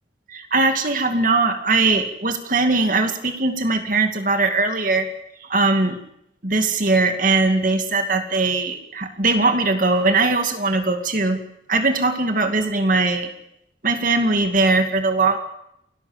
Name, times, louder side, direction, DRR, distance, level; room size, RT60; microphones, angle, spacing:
voice 1, 0.3-5.1 5.4-6.0 6.4-11.4 11.7-13.3 13.8-15.4, right 3 dB, 50° right, 6 dB, 2.3 m, -20 dB
28.0 x 13.0 x 8.8 m, 0.81 s
head